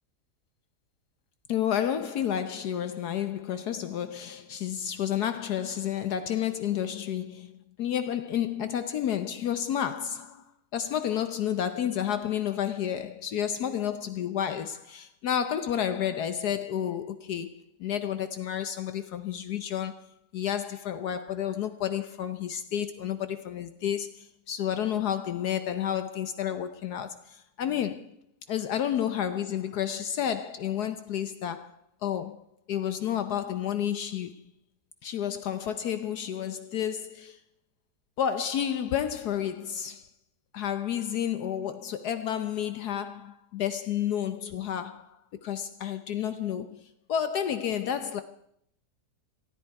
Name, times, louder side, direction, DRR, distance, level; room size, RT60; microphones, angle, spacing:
voice 1, 1.5-10.4 10.7-20.1 20.3-28.2 28.5-34.4 35.0-37.4 38.2-40.1 40.5-48.2, left 9 dB, 70° left, 1.3 m, -31 dB
18.5 x 14.5 x 4.7 m
omnidirectional pair, 1.8 m